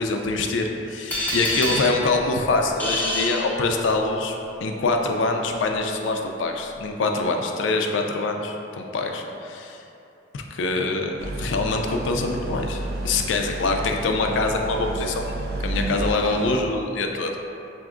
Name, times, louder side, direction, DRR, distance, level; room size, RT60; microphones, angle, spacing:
voice 1, 0.0-9.8 10.3-15.3 15.6-17.4, left 3 dB, 75° left, 3 dB, 0.4 m, -24 dB
sound 1, 1.1-4.2, left 1 dB, 10° left, 0.6 m, -28 dB
sound 2, 11.2-16.6, right 2 dB, 55° right, 0.3 m, -31 dB
5.9 x 2.6 x 2.4 m, 2.8 s
head